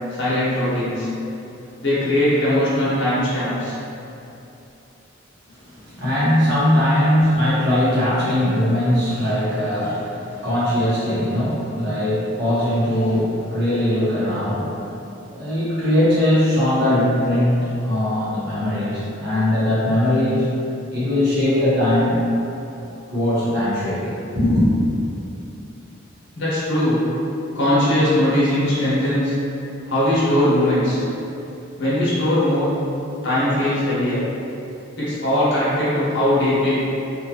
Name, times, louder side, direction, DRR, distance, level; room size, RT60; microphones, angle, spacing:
voice 1, 0.1-1.1 1.8-3.7 26.3-27.0 27.5-29.3 29.8-31.0 31.8-32.7 33.2-34.2 35.0-36.7, left 1 dB, 60° left, -11 dB, 0.9 m, -20 dB
voice 2, 5.6-14.8 15.3-20.5 20.9-22.2 23.1-24.7, left 1 dB, 55° right, -10 dB, 1.0 m, -20 dB
2.7 x 2.4 x 2.8 m, 2.8 s
head